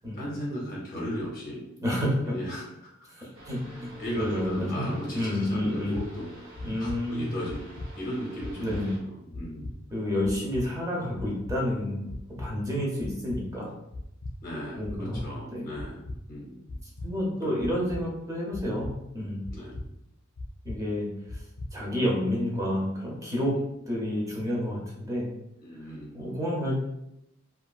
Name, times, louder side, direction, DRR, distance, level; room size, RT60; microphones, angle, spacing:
voice 1, 0.1-1.6 2.2-2.9 3.2-3.3 3.7-6.5 6.8-7.7 8.0-9.7 14.4-16.0 16.3-16.6 17.4-17.7 19.5-19.8 23.4-23.5 25.6-26.3, equal, 45° left, -4 dB, 0.6 m, -36 dB
voice 2, 1.8-2.3 3.1-6.0 6.6-7.3 8.6-8.9 9.9-12.1 12.4-13.7 14.7-15.2 15.5-15.6 17.0-19.4 20.6-21.4 21.7-23.6 23.9-25.3 25.8-26.8, left 1 dB, 15° right, -3 dB, 0.7 m, -30 dB
sound 1, 3.3-9.0, right 1 dB, 45° right, 0.8 m, -48 dB
sound 2, 5.9-6.0 6.6-7.0 7.5-7.9 8.4-8.8 9.3-9.7 10.2-10.6 11.2-11.6 12.1-12.5 13.0-13.4 13.9-14.3 14.8-15.2 15.8-16.2 16.7-17.1 17.6-18.0 18.5-18.9 19.4-19.8 20.4-20.8 21.3-21.7, left 2 dB, 85° left, 0.5 m, -37 dB
2.8 x 2.4 x 2.3 m, 0.81 s
head